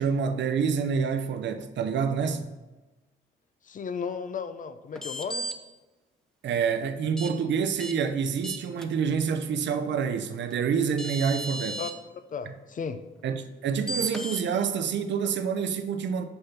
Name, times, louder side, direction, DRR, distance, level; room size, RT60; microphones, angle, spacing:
voice 1, 0.0-2.5 6.4-11.8 12.5-12.6 13.2-16.2, right 6 dB, 65° right, 0.7 m, -27 dB
voice 2, 3.6-5.5 11.8-11.9 12.3-13.0, left 6 dB, 40° left, 0.6 m, -34 dB
sound 1, 5.0-5.5 7.2-7.3 7.8-7.9 8.4-8.9 10.5-10.6 11.0-11.9 13.9-14.4, right 1 dB, 5° left, 0.8 m, -34 dB
6.7 x 5.6 x 5.8 m
cardioid pair, 90°, 20 cm